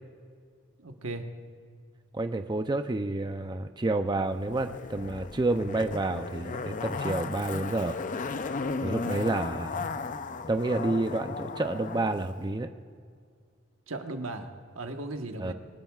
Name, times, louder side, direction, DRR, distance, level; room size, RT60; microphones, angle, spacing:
voice 1, 0.8-1.3 13.9-14.5 14.7-15.5, right 2 dB, 85° right, 4 dB, 1.3 m, -36 dB
voice 2, 2.1-8.0 8.8-10.0 10.5-12.7 15.4-15.5, right 2 dB, 20° right, 7 dB, 0.5 m, -29 dB
Zipper (clothing), 4.5-12.1 12.4-12.5, left 4 dB, 40° left, 0.5 m, -35 dB
24.5 x 19.0 x 2.4 m, 2.1 s
head